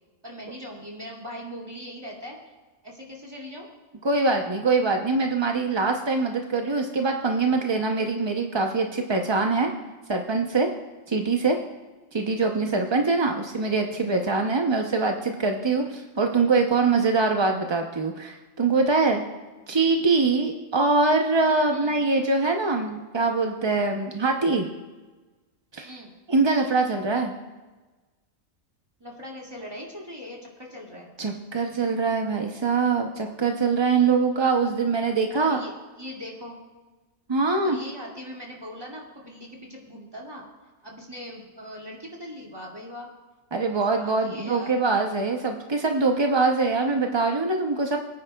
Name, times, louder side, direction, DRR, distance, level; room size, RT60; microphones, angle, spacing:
voice 1, 0.2-2.4 2.8-3.7 21.7-22.0 25.8-26.1 29.0-31.1 35.3-36.6 37.6-43.1 43.7-44.7, equal, 15° right, -3 dB, 2.2 m, -40 dB
voice 2, 4.0-9.7 10.1-10.7 11.1-11.6 12.1-19.2 19.7-24.7 25.7-25.9 26.3-27.3 31.2-35.6 37.3-37.8 43.5-48.0, right 3 dB, 35° right, 3 dB, 0.4 m, -23 dB
23.5 x 9.5 x 2.3 m, 1.2 s
omnidirectional pair, 1.4 m